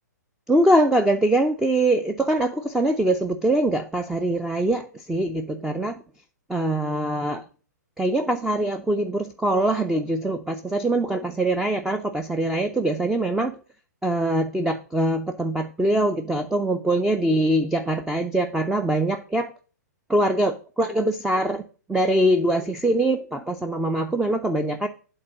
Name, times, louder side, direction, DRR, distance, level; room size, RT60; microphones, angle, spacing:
voice 1, 0.5-6.0 6.5-7.4 8.0-13.6 14.0-19.5 20.1-21.6 21.9-24.9, right 1 dB, 5° right, 7 dB, 0.5 m, -23 dB
8.7 x 3.8 x 6.1 m, 0.38 s
hypercardioid pair, 125°, 10 cm